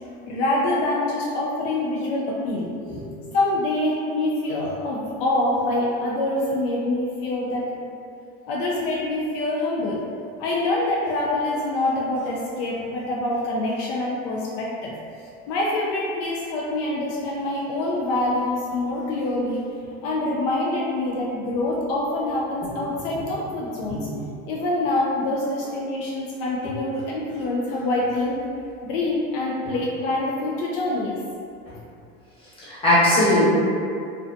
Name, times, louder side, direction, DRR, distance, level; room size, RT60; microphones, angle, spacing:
voice 1, 0.2-2.7 3.3-7.7 8.5-10.0 10.4-14.9 15.5-19.6 20.0-24.0 24.5-28.4 28.8-31.2, left 2 dB, 70° left, -4 dB, 0.5 m, -25 dB
voice 2, 23.9-24.2 32.7-33.5, left 1 dB, 20° left, -10 dB, 1.0 m, -19 dB
2.4 x 2.2 x 2.5 m, 2.5 s
supercardioid pair, 120°, 31 cm